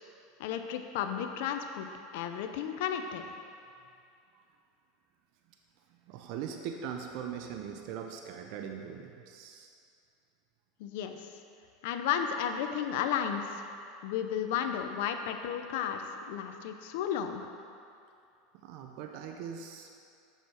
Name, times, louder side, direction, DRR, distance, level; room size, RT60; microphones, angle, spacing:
voice 1, 0.4-1.9 2.1-3.2 10.8-11.3 11.8-13.7 14.0-17.4, left 8 dB, 70° left, 6 dB, 0.6 m, -33 dB
voice 2, 6.1-9.7 18.6-19.9, right 7 dB, 60° right, 4 dB, 0.6 m, -40 dB
6.7 x 6.4 x 4.7 m, 2.5 s
supercardioid pair, 115°, 0 cm